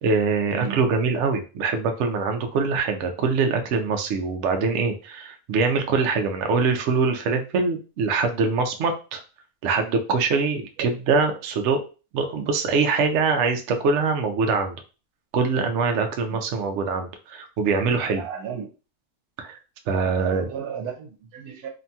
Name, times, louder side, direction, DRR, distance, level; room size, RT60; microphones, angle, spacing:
voice 1, 0.0-9.2 9.6-11.8 12.1-14.8 15.3-18.2 19.4-19.6 19.9-20.5, right 4 dB, 65° right, 5 dB, 0.7 m, -23 dB
voice 2, 0.5-0.8 10.8-10.9 16.3-16.4 18.2-18.7 20.2-21.7, right 7 dB, 85° right, 4 dB, 1.2 m, -34 dB
2.8 x 2.7 x 2.2 m, 0.33 s
omnidirectional pair, 1.6 m